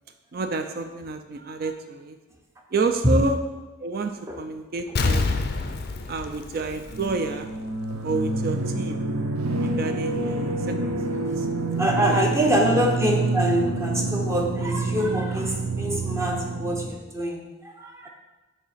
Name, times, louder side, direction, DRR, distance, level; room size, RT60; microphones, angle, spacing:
voice 1, 0.3-2.2 2.7-3.4 3.8-5.4 6.1-7.5 8.0-9.0 9.6-11.5 12.0-12.8, right 3 dB, 45° right, 6 dB, 0.4 m, -29 dB
Explosion, 5.0-7.6 7.9-8.0, left 3 dB, 50° left, 0.4 m, -27 dB
sound 1, 6.9-16.9, right 2 dB, 90° right, 0.6 m, -27 dB
voice 2, 11.8-18.1, equal, 15° right, 1 dB, 0.6 m, -25 dB
7.1 x 2.7 x 5.6 m, 1.1 s
head